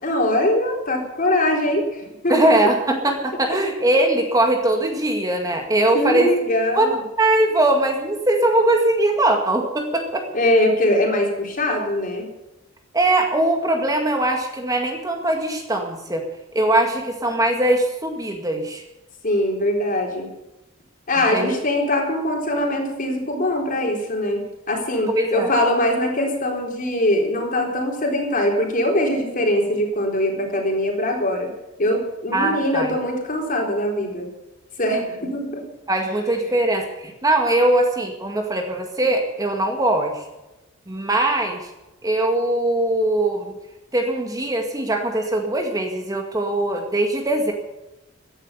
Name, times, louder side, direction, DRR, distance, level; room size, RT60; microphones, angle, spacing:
voice 1, 0.0-2.5 5.9-7.0 10.3-12.3 19.2-20.3 21.1-31.5 31.8-34.3 34.8-35.6, left 1 dB, 45° left, 1 dB, 4.0 m, -22 dB
voice 2, 2.3-6.3 6.8-6.9 7.2-10.2 12.9-16.2 16.5-18.8 21.2-21.5 25.1-25.5 32.3-32.9 35.9-40.2 40.9-41.7 42.0-43.5 43.9-47.5, right 1 dB, 20° right, 3 dB, 2.0 m, -21 dB
15.5 x 10.5 x 6.9 m, 0.98 s
head